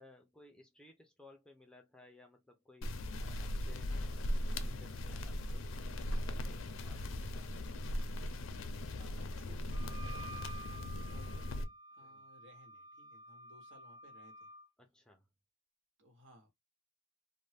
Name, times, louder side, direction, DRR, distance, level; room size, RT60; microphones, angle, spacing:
voice 1, 0.0-7.5 12.0-12.3 14.8-15.2, left 2 dB, 5° left, 0.5 m, -61 dB
sound 1, 2.8-11.6, left 1 dB, 80° left, 0.5 m, -39 dB
voice 2, 9.0-14.5 16.0-16.5, left 1 dB, 70° right, 1.3 m, -62 dB
Wind instrument woodwind instrument, 9.7-14.7, right 2 dB, 25° right, 0.8 m, -51 dB
2.6 x 2.1 x 3.3 m
head